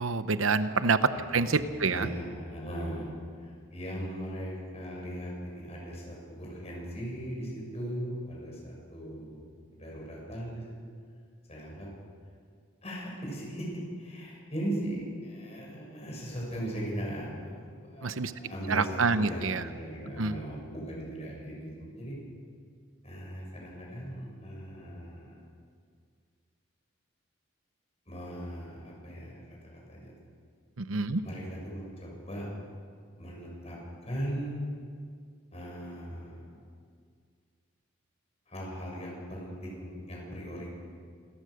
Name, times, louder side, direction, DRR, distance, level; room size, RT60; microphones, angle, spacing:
voice 1, 0.0-2.1 18.0-18.3 18.7-19.6 20.2-20.4 30.8-31.2, right 4 dB, 85° right, 12 dB, 0.8 m, -27 dB
voice 2, 1.1-3.1 3.4-10.6 11.5-11.9 12.8-22.2 23.0-25.4 28.1-30.1 31.2-32.5 33.2-34.6 35.5-36.6 38.5-40.7, equal, 30° left, -3 dB, 7.2 m, -39 dB
27.5 x 14.5 x 6.5 m, 2.1 s
head